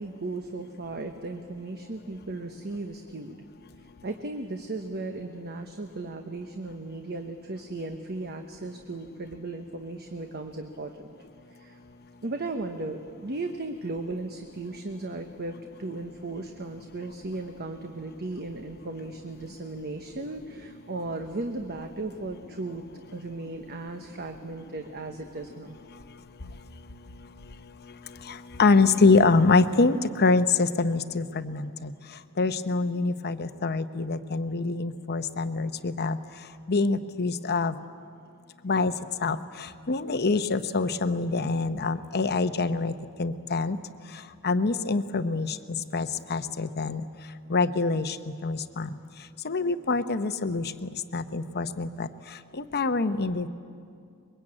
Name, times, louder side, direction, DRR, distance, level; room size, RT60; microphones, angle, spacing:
voice 1, 0.0-3.4 4.0-11.1 11.5-11.8 12.2-22.8 23.1-25.8, right 2 dB, 45° right, 5 dB, 1.1 m, -36 dB
voice 2, 28.3-31.9 32.4-36.2 36.7-37.7 38.6-38.9 39.2-39.4 39.9-42.9 43.2-43.8 44.4-45.6 45.9-47.0 47.5-48.2 48.4-48.9 49.4-52.1 52.6-53.5, left 3 dB, 50° left, 11 dB, 0.9 m, -25 dB
24.0 x 22.5 x 8.8 m, 2.4 s
head